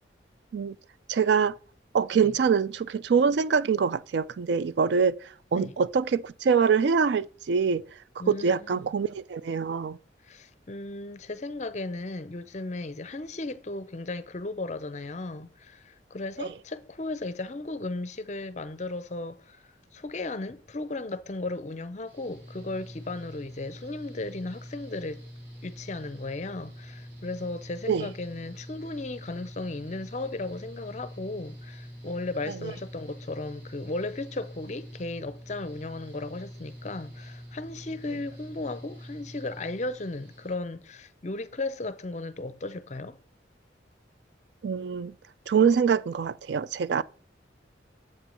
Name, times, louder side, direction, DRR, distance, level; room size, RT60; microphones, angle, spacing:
voice 1, 1.1-1.5 1.9-5.2 5.5-7.8 8.3-10.0 16.4-16.5 27.9-28.1 32.6-32.7 44.6-45.1 45.5-47.0, right 6 dB, 65° right, 0.4 m, -24 dB
voice 2, 8.2-8.9 10.2-25.2 25.6-43.2, left 2 dB, 40° left, 0.5 m, -35 dB
Mechanical fan, 22.1-40.5, equal, 85° right, 3.6 m, -45 dB
7.7 x 4.6 x 5.1 m
head